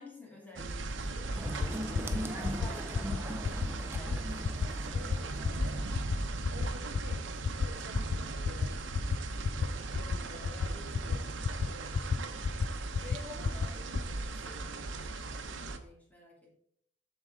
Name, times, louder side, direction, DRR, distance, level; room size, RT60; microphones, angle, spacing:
voice 1, 0.0-4.8 9.9-11.2 11.9-12.6 12.9-16.5, left 2 dB, 10° left, -3 dB, 2.5 m, -51 dB
sound 1, 0.6-15.8, right 3 dB, 80° right, 0.8 m, -38 dB
sound 2, 1.3-6.4, right 1 dB, 10° right, 0.6 m, -41 dB
sound 3, 1.5-1.7 1.9-2.2 2.4-2.7 2.9-3.2 3.4-3.7 3.9-4.2 4.4-4.7 4.9-5.2 5.4-5.7 5.9-6.2 6.4-6.7 6.9-7.2 7.4-7.7 7.9-8.2 8.4-8.7 8.9-9.2 9.4-9.7 9.9-10.2 10.4-10.7 10.9-11.2 11.4-11.7 11.9-12.2 12.4-12.7 12.9-13.2 13.4-13.7 13.9-14.1, left 5 dB, 45° left, 0.3 m, -30 dB
voice 2, 4.5-5.8 6.5-8.8 9.4-11.9, right 1 dB, 60° right, 3 dB, 1.3 m, -51 dB
7.6 x 6.7 x 3.7 m, 0.69 s
head